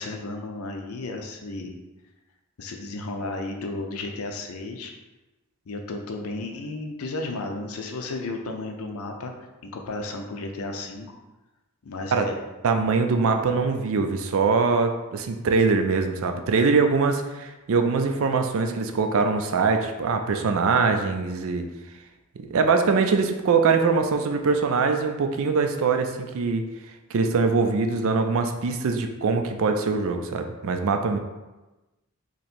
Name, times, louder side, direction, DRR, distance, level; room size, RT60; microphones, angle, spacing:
voice 1, 0.0-1.7 2.6-4.9 5.7-9.3 9.6-11.2 11.8-12.4, left 2 dB, 75° left, 3 dB, 0.5 m, -33 dB
voice 2, 12.6-21.7 22.4-26.7 27.1-31.2, right 4 dB, 65° right, 5 dB, 0.4 m, -23 dB
3.0 x 2.8 x 4.2 m, 1.1 s
head